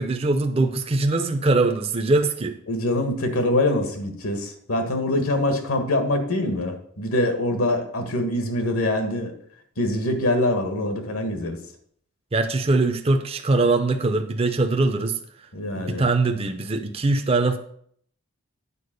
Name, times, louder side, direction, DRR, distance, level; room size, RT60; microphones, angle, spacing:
voice 1, 0.0-2.6 12.3-15.2 15.8-17.6, right 3 dB, 25° right, 7 dB, 0.5 m, -22 dB
voice 2, 2.7-9.3 9.8-11.6 15.5-16.0, left 1 dB, 75° left, 6 dB, 1.5 m, -24 dB
8.5 x 4.5 x 6.5 m, 0.64 s
head